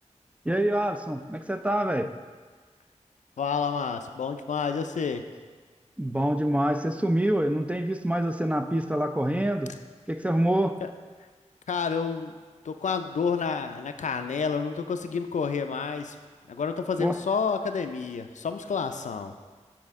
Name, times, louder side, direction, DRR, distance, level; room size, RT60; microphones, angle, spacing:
voice 1, 0.5-2.1 6.0-9.7 10.1-10.8 17.0-17.2, right 1 dB, 10° right, 7 dB, 0.3 m, -26 dB
voice 2, 3.4-5.2 11.7-12.3 12.6-16.2 16.5-19.3, left 5 dB, 85° left, 8 dB, 0.4 m, -29 dB
7.5 x 4.3 x 3.5 m, 1.5 s
wide cardioid pair, 55°, 12 cm